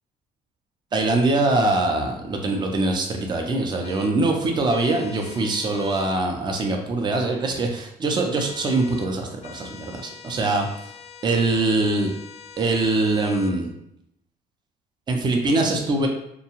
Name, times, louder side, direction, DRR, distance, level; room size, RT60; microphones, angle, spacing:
voice 1, 0.9-10.7 11.2-12.1 12.6-13.7 15.1-16.1, right 2 dB, 25° right, 3 dB, 0.5 m, -23 dB
sound 1, 3.8-4.1 4.7-6.1 8.3-9.1 9.4-13.6, left 6 dB, 40° left, 0.3 m, -44 dB
2.7 x 2.2 x 2.9 m, 0.78 s
cardioid pair, 110°, 17 cm